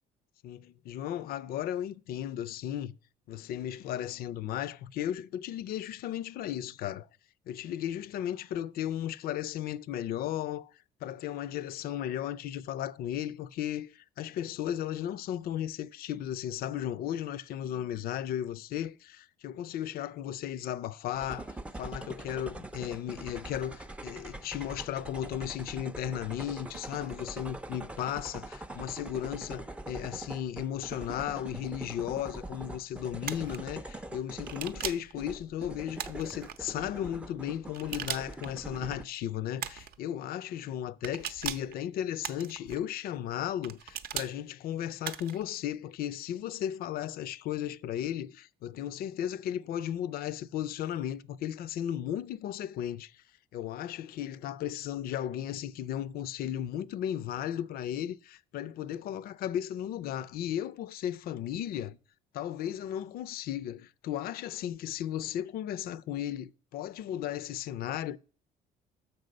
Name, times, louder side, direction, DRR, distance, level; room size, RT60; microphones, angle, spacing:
voice 1, 0.4-3.0 3.3-7.1 7.5-10.7 11.0-53.2 53.5-62.0 62.3-68.2, left 11 dB, 60° left, 0.4 m, -35 dB
sound 1, 21.1-39.0, right 2 dB, 5° right, 0.4 m, -43 dB
sound 2, 33.2-33.6 34.5-35.1 36.0-36.6 37.7-38.5 39.6-40.0 41.0-41.7 42.2-42.8 43.6-44.3 45.0-45.4, right 9 dB, 65° right, 0.6 m, -38 dB
6.7 x 5.9 x 5.1 m
cardioid pair, 110°, 17 cm